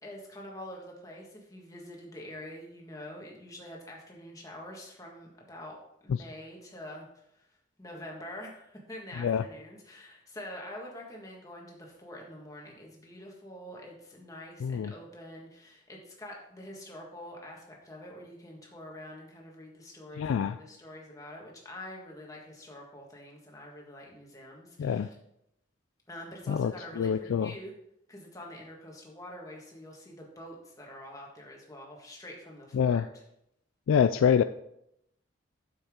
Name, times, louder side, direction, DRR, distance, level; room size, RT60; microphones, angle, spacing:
voice 1, 0.0-5.8 6.0-7.1 7.3-7.4 7.8-25.2 26.1-27.7 28.1-33.2, left 1 dB, 15° left, -1 dB, 1.6 m, -46 dB
voice 2, 14.6-14.9 20.2-20.6 24.8-25.1 26.5-26.7 27.0-27.5 32.7-33.0 33.9-34.4, left 7 dB, 80° left, 11 dB, 0.3 m, -25 dB
9.6 x 7.0 x 3.7 m, 0.80 s
head